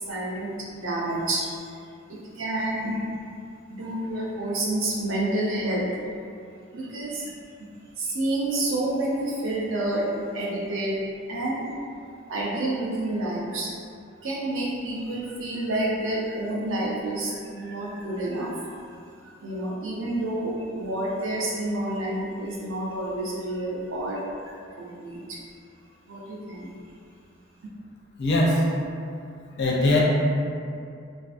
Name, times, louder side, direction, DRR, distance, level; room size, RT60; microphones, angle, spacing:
voice 1, 0.0-1.8 2.1-3.0 3.7-5.9 6.7-7.3 8.0-10.1 10.3-10.9 11.3-11.7 12.3-13.7 14.2-18.7 19.4-25.4 26.1-26.7, right 1 dB, 70° right, -4 dB, 0.6 m, -29 dB
voice 2, 28.2-28.6 29.6-30.0, left 1 dB, 60° left, -3 dB, 0.4 m, -20 dB
2.5 x 2.4 x 2.4 m, 2.4 s
head